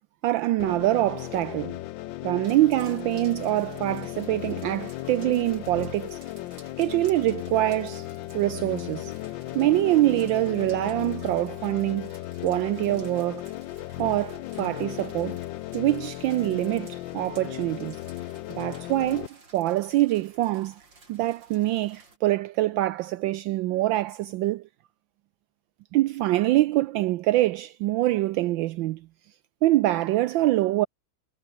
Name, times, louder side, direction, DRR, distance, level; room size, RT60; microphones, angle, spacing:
voice 1, 0.0-1.8 2.2-6.2 6.8-8.1 8.3-9.1 9.5-12.1 12.4-13.5 14.0-15.4 15.7-18.0 18.5-19.3 19.5-20.8 21.1-24.6 25.9-29.1 29.6-30.9, right 16 dB, 75° right, 1.2 m, -24 dB
sound 1, 0.6-19.3, left 16 dB, 70° left, 1.3 m, -36 dB
sound 2, 2.4-22.2, right 3 dB, 60° right, 5.5 m, -55 dB
Bowed string instrument, 7.5-12.2, left 2 dB, 55° left, 7.2 m, -60 dB
omnidirectional pair, 2.3 m